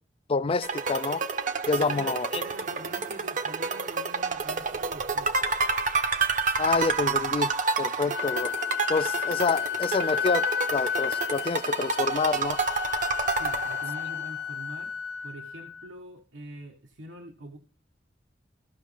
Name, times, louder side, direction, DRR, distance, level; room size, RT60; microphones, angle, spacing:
voice 1, 0.3-1.2 1.7-2.4 6.6-7.5 7.8-8.5 8.9-10.5 10.7-12.6, left 4 dB, 30° left, 0.3 m, -27 dB
sound 1, 0.6-14.3, right 4 dB, 45° right, 0.8 m, -29 dB
voice 2, 1.7-5.5 13.3-14.9 15.2-17.6, right 1 dB, 80° right, 1.4 m, -44 dB
Wind instrument woodwind instrument, 8.1-15.9, left 9 dB, 70° left, 0.7 m, -32 dB
15.5 x 6.2 x 3.5 m
head